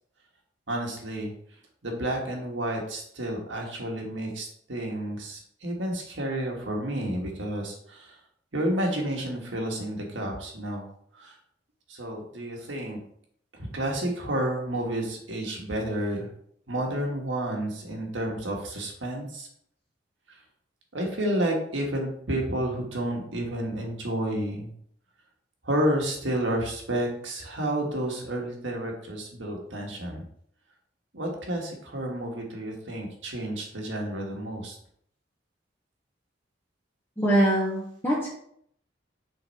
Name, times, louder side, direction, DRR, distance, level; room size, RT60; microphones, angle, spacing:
voice 1, 0.7-8.2 8.5-10.9 11.1-11.4 11.9-13.0 13.5-16.3 16.7-19.5 20.3-20.4 20.9-24.7 25.6-30.2 31.1-34.8, right 1 dB, 75° right, 1 dB, 1.6 m, -30 dB
voice 2, 37.2-38.3, right 1 dB, 10° left, -6 dB, 1.2 m, -23 dB
6.7 x 4.0 x 4.3 m, 0.67 s
head